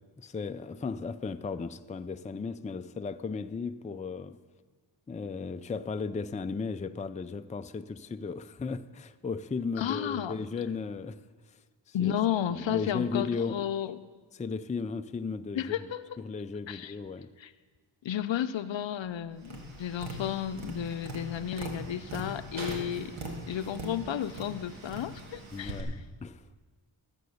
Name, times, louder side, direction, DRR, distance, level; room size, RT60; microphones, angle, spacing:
voice 1, 0.0-4.4 5.1-11.2 11.9-12.2 12.5-13.7 14.3-15.9 16.2-17.3 25.5-26.4, left 4 dB, 15° left, 0.4 m, -35 dB
voice 2, 9.8-10.5 11.9-14.0 15.6-16.2 16.7-16.9 17.4-17.5 18.0-23.1 23.5-26.0, left 10 dB, 65° left, 0.7 m, -33 dB
Tap, 19.4-25.8, right 1 dB, 75° right, 2.0 m, -41 dB
13.5 x 7.9 x 6.5 m
cardioid pair, 55°, 49 cm